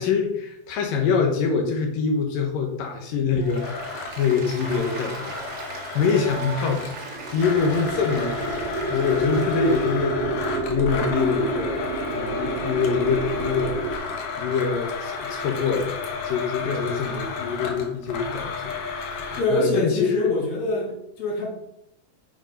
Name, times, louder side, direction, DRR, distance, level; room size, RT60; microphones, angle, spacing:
voice 1, 0.0-3.7 4.2-5.4 5.9-11.8 12.1-13.8 14.4-20.4, left 5 dB, 65° left, 3 dB, 2.5 m, -25 dB
Applause, 3.3-10.1, right 3 dB, 45° right, 1.5 m, -38 dB
Domestic sounds home sounds, 3.6-7.0 7.4-19.4, left 4 dB, 90° left, 3.6 m, -32 dB
sound 1, 6.9-14.0, right 3 dB, 70° right, 3.9 m, -30 dB
voice 2, 19.4-21.5, left 1 dB, 45° left, -2 dB, 3.2 m, -25 dB
9.0 x 6.6 x 5.2 m, 0.81 s
omnidirectional pair, 4.8 m